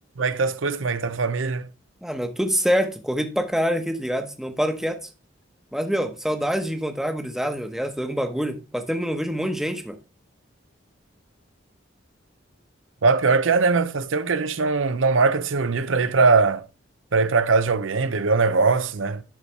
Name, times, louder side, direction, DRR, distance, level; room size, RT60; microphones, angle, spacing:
voice 1, 0.2-1.7 13.0-16.6 17.1-19.2, right 4 dB, 80° right, 0.7 m, -21 dB
voice 2, 2.0-5.0 5.7-10.0, equal, ahead, 0.9 m, -25 dB
12.0 x 4.2 x 3.2 m
head